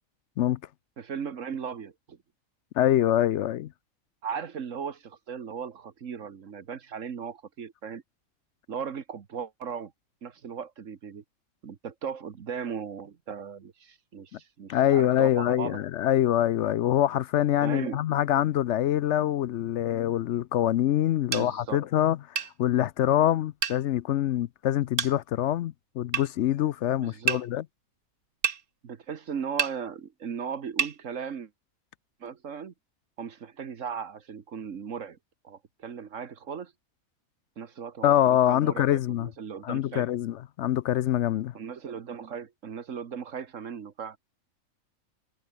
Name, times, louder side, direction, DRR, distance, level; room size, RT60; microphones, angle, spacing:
voice 1, 1.0-2.2 4.2-8.0 8.7-9.9 10.2-11.2 11.6-15.8 17.6-18.0 21.3-21.9 27.0-27.5 28.8-31.5 32.2-32.7 33.2-35.2 35.4-36.7 37.6-40.1 41.5-44.2, right 7 dB, 65° right, 1.6 m, -37 dB
voice 2, 2.8-3.7 14.7-27.6 38.0-39.3 39.6-41.5, left 12 dB, 65° left, 0.8 m, -25 dB
sound 1, 21.3-21.5 22.4-22.5 23.6-23.8 25.0-25.1 26.1-26.3 27.3-27.4 28.4-28.6 29.6-29.8 30.8-31.0, right 7 dB, 85° right, 1.8 m, -27 dB
omnidirectional pair, 1.5 m